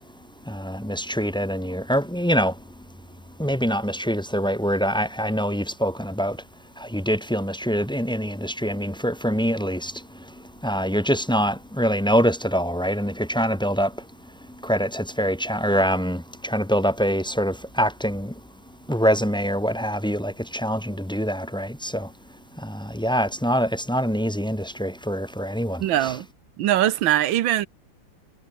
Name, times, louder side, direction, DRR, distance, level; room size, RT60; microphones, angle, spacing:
voice 1, 0.5-2.5 3.4-6.4 6.8-9.9 10.6-13.9 14.6-18.3 18.9-22.1 22.6-26.1, equal, 5° left, 1.5 m, -24 dB
voice 2, 25.8-26.3 26.6-27.7, right 12 dB, 85° right, 1.7 m, -21 dB
omnidirectional pair, 2.1 m